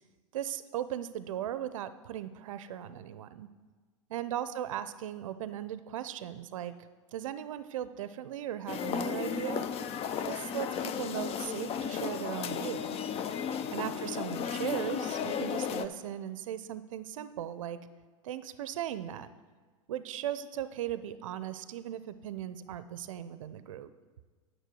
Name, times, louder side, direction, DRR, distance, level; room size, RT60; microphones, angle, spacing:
voice 1, 0.3-3.5 4.1-9.7 10.2-13.0 13.7-17.8 18.2-19.3 19.9-23.9, right 11 dB, 70° right, 14 dB, 0.5 m, -38 dB
sound 1, 8.7-15.9, left 7 dB, 35° left, 0.6 m, -34 dB
9.2 x 6.3 x 7.7 m, 1.4 s
hypercardioid pair, 90°, 18 cm